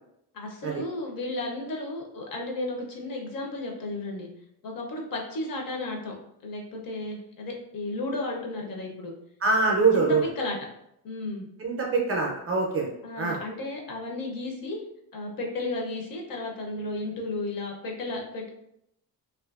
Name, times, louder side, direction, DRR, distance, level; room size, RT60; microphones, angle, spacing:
voice 1, 0.3-4.3 4.6-6.1 6.4-9.1 9.9-10.6 11.0-11.5 13.0-14.8 15.1-18.5, left 2 dB, 55° left, 0 dB, 0.6 m, -33 dB
voice 2, 9.4-10.2 11.6-12.9 13.2-13.4, right 4 dB, 35° right, -1 dB, 0.4 m, -24 dB
2.5 x 2.4 x 2.3 m, 0.77 s
cardioid pair, 160°, 41 cm